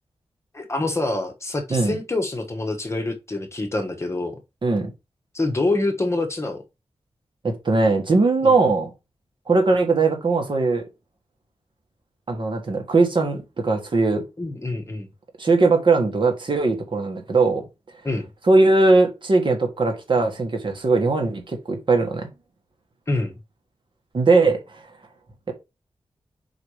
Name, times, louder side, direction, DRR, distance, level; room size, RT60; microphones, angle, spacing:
voice 1, 0.5-4.4 5.3-6.6 8.4-8.5 14.4-15.1 18.0-18.3 23.1-23.4, left 2 dB, 25° left, 1.3 m, -26 dB
voice 2, 7.4-8.9 9.5-10.8 12.3-14.2 15.4-17.6 18.5-22.3 24.1-24.8, right 3 dB, 50° right, 1.5 m, -20 dB
4.8 x 4.7 x 4.8 m
wide cardioid pair, 130°, 10 cm